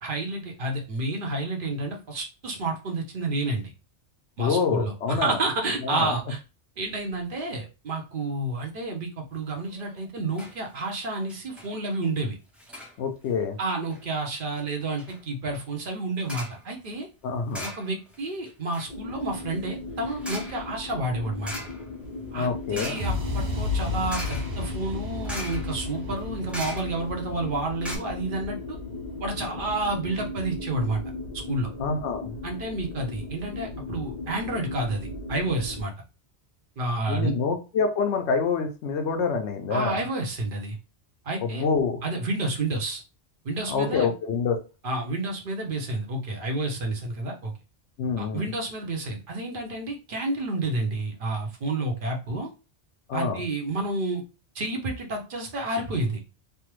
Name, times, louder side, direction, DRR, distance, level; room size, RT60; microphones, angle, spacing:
voice 1, 0.0-3.7 4.4-6.4 6.8-12.3 13.6-17.1 17.6-21.5 22.3-28.8 29.2-31.0 31.5-31.7 32.4-35.9 36.8-37.3 39.7-40.8 41.2-41.6 42.0-43.0 43.4-44.1 44.8-47.5 48.2-52.5 53.1-54.2 54.5-56.2, right 2 dB, 55° right, 2 dB, 0.8 m, -30 dB
voice 2, 4.4-5.4 5.8-6.2 13.0-13.6 17.2-17.7 22.3-23.0 31.8-32.4 37.1-40.0 41.4-42.0 43.7-44.6 48.0-48.5 53.1-53.4, left 5 dB, 75° left, 5 dB, 0.8 m, -26 dB
sound 1, 9.7-10.0 10.3-10.6 10.9-11.0 11.3-11.7 12.6-13.0 13.7-14.0 14.6-14.7 15.0-15.2 16.2-16.6 17.5-18.2 18.5-27.2 27.5-27.6 27.8-28.0, equal, ahead, 0.5 m, -40 dB
sound 2, 18.9-35.8, left 2 dB, 40° left, 1.0 m, -37 dB
sound 3, 23.0-30.9, left 4 dB, 75° right, 1.0 m, -34 dB
3.3 x 2.0 x 2.9 m, 0.31 s
omnidirectional pair, 1.2 m